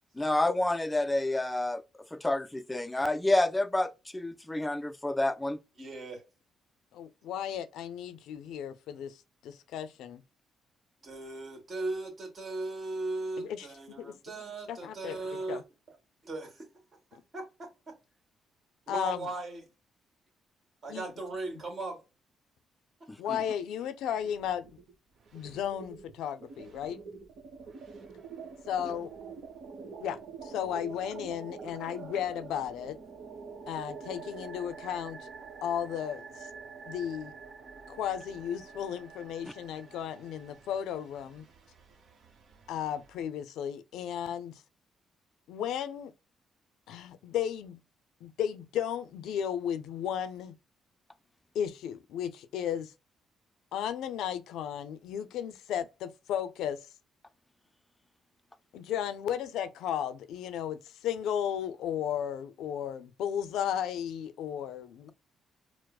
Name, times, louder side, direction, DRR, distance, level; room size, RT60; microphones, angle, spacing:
voice 1, 0.2-1.8 2.1-5.6 23.3-23.4 39.4-39.5, left 1 dB, 10° left, 0.3 m, -29 dB
voice 2, 5.8-6.2 11.0-15.6 16.2-16.6 17.3-17.5 17.9-18.0 18.9-19.6 20.8-22.0, right 2 dB, 40° right, 1.7 m, -37 dB
voice 3, 6.9-9.2 9.4-10.2 13.4-14.1 14.7-15.2 15.5-15.6 18.9-19.3 20.9-21.1 23.2-24.8 25.3-27.0 28.7-29.1 30.0-33.0 33.7-35.3 35.6-36.5 36.9-37.3 37.9-41.5 42.7-44.6 45.5-46.1 46.9-47.8 48.2-50.6 51.5-52.9 53.7-56.9 58.7-65.1, left 9 dB, 85° left, 0.4 m, -34 dB
sound 1, 24.1-24.9 25.2-43.2, right 5 dB, 65° right, 0.9 m, -47 dB
4.6 x 2.0 x 2.3 m
cardioid pair, 90°, 0 cm